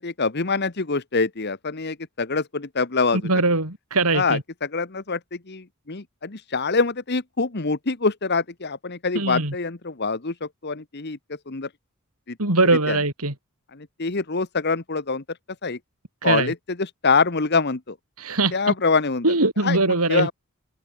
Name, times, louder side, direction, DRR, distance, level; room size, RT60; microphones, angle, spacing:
voice 1, 0.0-3.3 4.1-5.2 5.5-11.2 11.5-11.7 12.3-12.4 12.9-13.0 13.7-15.2 15.6-15.8 16.2-17.9 18.5-19.2 19.6-19.8 20.1-20.3, left 4 dB, 50° left, 1.2 m, -25 dB
voice 2, 3.2-4.4 9.1-9.5 12.4-13.3 16.2-16.5 18.2-18.5 19.2-20.3, right 2 dB, 85° right, 4.6 m, -21 dB
head